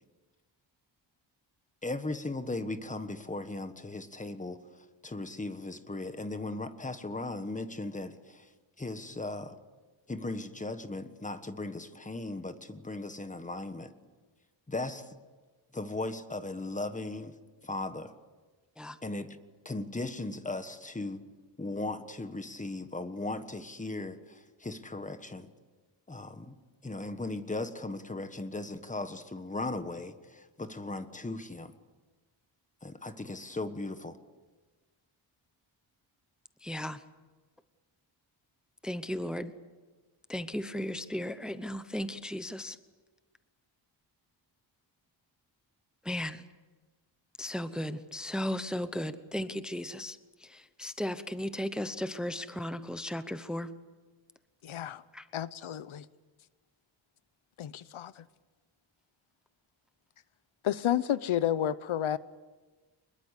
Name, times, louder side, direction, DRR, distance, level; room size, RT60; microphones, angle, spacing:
voice 1, 1.8-4.6 5.0-8.5 8.8-9.6 10.1-13.9 14.7-15.1 15.7-17.4 17.6-18.1 19.0-19.4 19.6-21.2 21.6-25.5 26.1-26.5 26.8-31.7 32.8-34.2, left 2 dB, 15° left, 1.3 m, -37 dB
voice 2, 36.6-37.0 38.8-39.5 40.3-42.8 46.0-46.4 47.4-53.7 55.1-55.3, left 1 dB, ahead, 0.8 m, -35 dB
voice 3, 54.6-55.0 55.3-56.0 57.6-58.2 60.6-62.2, left 10 dB, 75° left, 0.9 m, -31 dB
25.0 x 21.5 x 8.3 m
wide cardioid pair, 155°, 49 cm